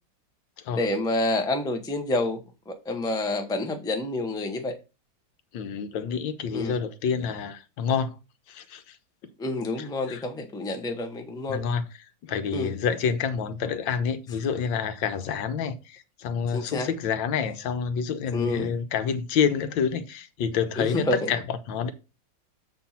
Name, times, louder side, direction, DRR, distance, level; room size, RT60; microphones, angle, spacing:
voice 1, 0.7-2.4 2.7-4.7 6.5-6.7 9.4-11.6 12.5-12.7 16.5-16.9 18.3-18.7 20.8-21.3, left 2 dB, 5° left, 0.5 m, -28 dB
voice 2, 5.5-8.1 8.5-9.0 9.8-10.2 11.5-11.8 12.2-21.9, left 6 dB, 70° left, 1.5 m, -28 dB
7.3 x 4.3 x 5.7 m
omnidirectional pair, 2.2 m